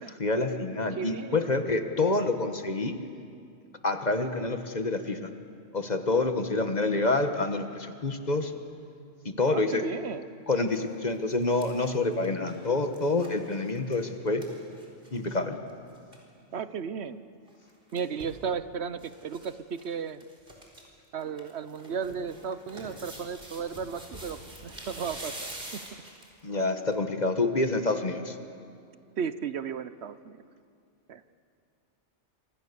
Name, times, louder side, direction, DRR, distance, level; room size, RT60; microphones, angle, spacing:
voice 1, 0.2-2.9 3.8-5.3 5.7-8.5 9.2-9.8 10.5-14.4 15.1-15.6 26.4-28.4, left 3 dB, 40° left, 7 dB, 1.5 m, -27 dB
voice 2, 0.9-1.5 9.5-10.3 16.5-17.2 17.9-20.2 21.1-25.8 29.2-30.4 31.1-31.2, right 6 dB, 70° right, 13 dB, 1.0 m, -35 dB
sound 1, 10.5-10.7 11.1-15.4 15.7-15.8 15.9-16.2 17.5-18.4 19.0-19.5 19.7-19.8 20.2-20.8 21.2-26.4 26.9-27.0, right 1 dB, 50° right, 4.4 m, -45 dB
26.5 x 26.0 x 6.9 m, 2.4 s
omnidirectional pair, 1.2 m